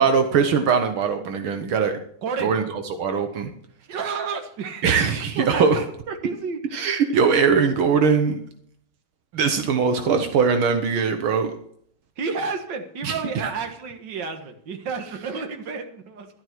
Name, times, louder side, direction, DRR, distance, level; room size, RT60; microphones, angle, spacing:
voice 1, 0.0-1.9 2.4-3.5 4.8-5.8 6.7-8.4 9.3-11.6 13.0-13.2, right 6 dB, 80° right, 6 dB, 1.9 m, -21 dB
voice 2, 2.2-2.5 3.9-4.9 5.4-5.8 6.1-6.6 12.2-16.3, right 5 dB, 60° right, 5 dB, 2.1 m, -30 dB
12.5 x 12.0 x 4.6 m, 0.63 s
omnidirectional pair, 2.3 m